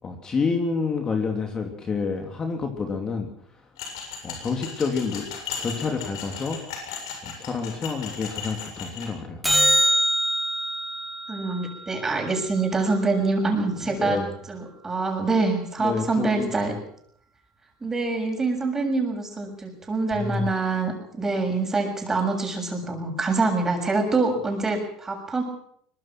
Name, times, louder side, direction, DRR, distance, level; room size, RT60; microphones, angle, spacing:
voice 1, 0.0-3.3 4.2-5.3 5.6-6.6 7.2-9.4 13.8-14.3 15.8-16.5 20.1-20.5, left 4 dB, 30° left, 4 dB, 3.3 m, -28 dB
sound 1, 3.8-9.1, left 6 dB, 85° left, 7.4 m, -36 dB
sound 2, 9.4-13.9 20.5-20.6, equal, ahead, 2.6 m, -26 dB
voice 2, 11.3-14.2 14.5-16.7 17.8-25.4, right 3 dB, 20° right, 3 dB, 7.1 m, -25 dB
23.0 x 21.0 x 6.2 m, 0.65 s
supercardioid pair, 105°, 3 cm